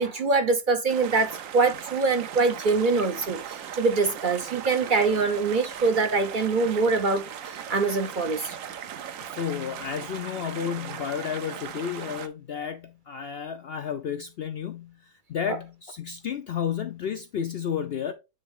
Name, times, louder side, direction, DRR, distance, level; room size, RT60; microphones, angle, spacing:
voice 1, 0.0-8.6, right 4 dB, 45° right, 0.6 m, -24 dB
sound 1, 0.9-12.3, right 9 dB, 65° right, 1.0 m, -38 dB
voice 2, 9.2-18.1, left 8 dB, 75° left, 0.5 m, -32 dB
8.9 x 3.5 x 3.6 m
omnidirectional pair, 1.6 m